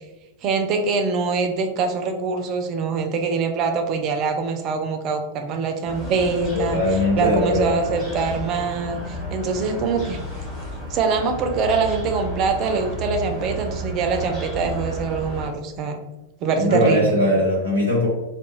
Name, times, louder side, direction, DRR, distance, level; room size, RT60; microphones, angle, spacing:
voice 1, 0.4-10.2 10.9-16.0 16.4-17.2, right 4 dB, 35° right, 5 dB, 0.4 m, -24 dB
sound 1, 5.9-15.5, right 1 dB, 25° left, 1.2 m, -32 dB
voice 2, 6.5-7.7 16.6-18.1, left 1 dB, 85° left, -5 dB, 1.0 m, -20 dB
2.3 x 2.1 x 3.0 m, 1.0 s
figure-of-eight pair, 90°, 0 cm